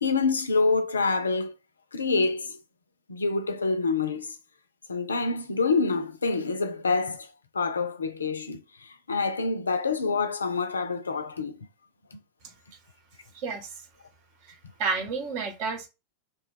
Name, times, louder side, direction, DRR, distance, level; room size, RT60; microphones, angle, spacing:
voice 1, 0.0-1.5 1.9-2.6 3.1-4.3 4.9-7.3 7.5-11.7 12.1-12.2, left 4 dB, 75° left, 0.4 m, -27 dB
voice 2, 13.3-13.8 14.4-15.9, right 4 dB, 45° right, 0.8 m, -31 dB
2.6 x 2.2 x 3.7 m
figure-of-eight pair, 90°, 0 cm